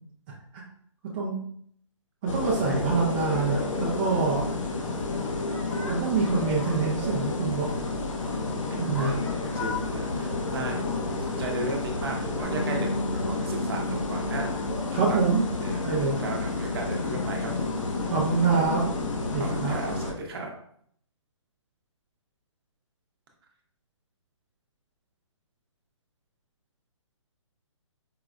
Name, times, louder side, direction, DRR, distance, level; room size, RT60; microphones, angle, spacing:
voice 1, 2.2-4.4 5.9-7.8 8.8-9.1 14.9-15.4 15.8-16.2 18.1-18.8 19.3-19.7, right 4 dB, 20° right, -4 dB, 0.3 m, -25 dB
sound 1, 2.3-20.1, left 3 dB, 80° left, 0.7 m, -30 dB
voice 2, 8.7-14.5 15.1-15.2 15.6-15.9 16.2-17.7 19.4-20.5, right 2 dB, 50° right, 2 dB, 0.7 m, -36 dB
Bass guitar, 12.4-17.1 17.4-18.7, equal, 35° left, 0.8 m, -37 dB
4.6 x 2.0 x 2.4 m, 0.64 s
hypercardioid pair, 155°, 16 cm